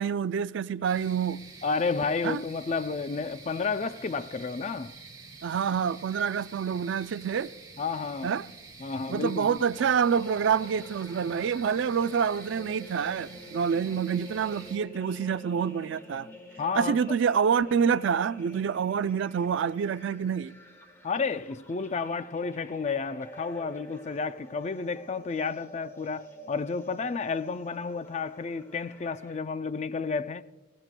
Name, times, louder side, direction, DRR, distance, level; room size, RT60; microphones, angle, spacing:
voice 1, 0.0-1.5 2.2-2.4 5.4-7.5 8.2-8.5 9.1-16.3 16.7-20.5, right 7 dB, 60° right, 0.3 m, -27 dB
sound 1, 0.8-14.8, right 4 dB, 20° right, 1.4 m, -48 dB
voice 2, 1.6-5.0 7.8-8.4 8.8-9.6 16.6-17.0 21.0-30.4, left 4 dB, 35° left, 0.3 m, -31 dB
sound 2, 9.8-29.4, equal, 15° left, 1.3 m, -49 dB
20.0 x 16.5 x 2.2 m
head